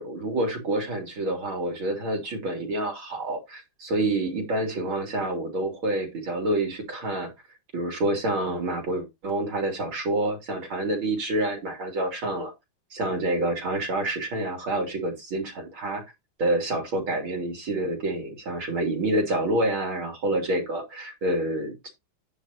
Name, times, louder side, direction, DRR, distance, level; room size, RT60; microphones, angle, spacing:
voice 1, 0.0-7.3 7.7-12.5 12.9-16.0 16.4-21.9, right 1 dB, 70° right, 3 dB, 3.7 m, -28 dB
9.8 x 4.3 x 5.7 m, 0.21 s
omnidirectional pair, 2.3 m